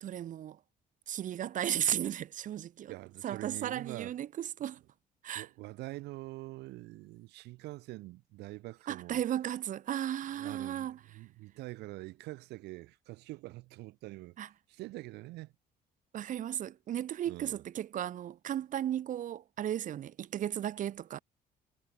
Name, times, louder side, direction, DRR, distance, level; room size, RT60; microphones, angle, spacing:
voice 1, 0.0-0.6 1.1-2.9 3.2-4.8 5.2-5.5 8.9-11.0 14.4-14.5 16.1-21.2, right 11 dB, 50° right, 0.7 m, -35 dB
voice 2, 2.9-4.2 5.3-9.2 10.4-14.4 14.7-15.5 17.3-17.6, right 19 dB, 85° right, 2.2 m, -45 dB
cardioid pair, 110°, 17 cm